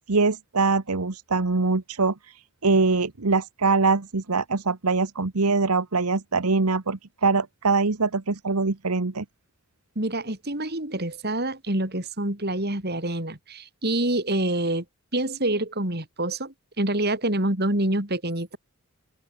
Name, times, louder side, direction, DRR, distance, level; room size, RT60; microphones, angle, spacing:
voice 1, 0.0-2.4 2.6-9.2, right 4 dB, 85° right, 1.2 m, -23 dB
voice 2, 10.0-14.8 15.1-18.6, right 1 dB, 45° right, 3.9 m, -26 dB
open air
head